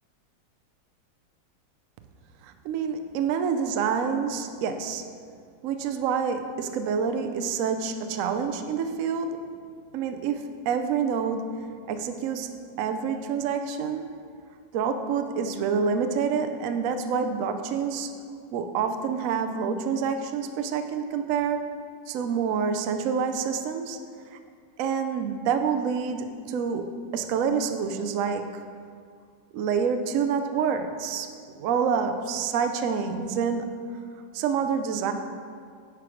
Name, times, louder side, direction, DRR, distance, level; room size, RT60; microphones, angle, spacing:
voice 1, 2.4-5.0 5.6-9.5 9.9-12.5 12.8-14.1 14.7-18.1 18.5-21.7 22.1-24.0 24.3-24.4 24.8-28.6 29.5-33.7 34.3-35.1, right 6 dB, 75° right, 7 dB, 0.7 m, -27 dB
9.8 x 4.7 x 4.9 m, 2.2 s
omnidirectional pair, 2.0 m